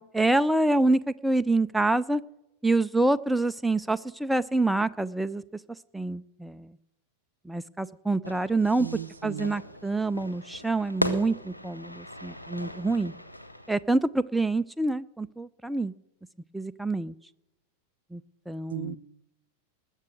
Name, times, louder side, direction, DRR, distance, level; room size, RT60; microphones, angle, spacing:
voice 1, 0.0-2.2 2.6-5.4 5.9-6.7 7.4-8.9 9.2-13.1 13.7-15.9 16.5-17.1 18.1-19.0, right 2 dB, 5° right, 0.4 m, -26 dB
Fire / Fireworks, 8.2-13.8, equal, 90° left, 0.9 m, -37 dB
voice 2, 8.8-9.5 18.7-19.0, right 9 dB, 65° right, 0.5 m, -36 dB
20.0 x 7.1 x 6.3 m
figure-of-eight pair, 90°, 0 cm